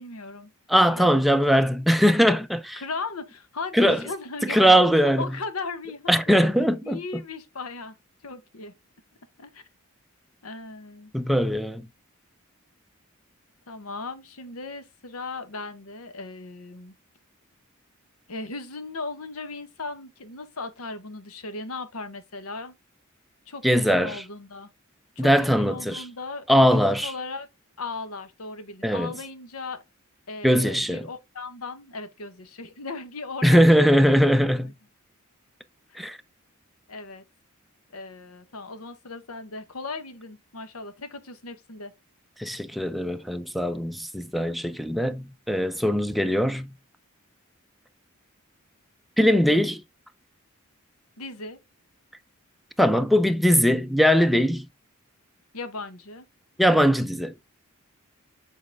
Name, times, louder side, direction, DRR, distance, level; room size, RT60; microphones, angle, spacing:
voice 1, 0.0-0.5 0.9-1.3 2.8-4.7 5.2-6.1 6.8-8.0 8.2-8.7 9.4-9.6 10.4-11.1 13.7-16.9 18.3-22.7 23.5-24.7 25.2-27.5 27.8-29.8 30.3-33.6 34.1-34.2 34.6-34.7 36.0-36.1 36.9-37.2 37.9-41.9 51.2-51.6 55.5-56.3, left 3 dB, 90° left, 1.1 m, -37 dB
voice 2, 0.7-2.8 3.7-4.0 4.4-5.3 6.1-7.0 11.1-11.9 23.6-24.2 25.2-26.0 26.5-27.1 28.8-29.1 30.4-31.1 33.4-34.7 36.0-36.2 42.4-46.7 49.2-49.8 52.8-54.7 56.6-57.3, equal, ahead, 0.4 m, -20 dB
7.3 x 4.1 x 3.4 m
head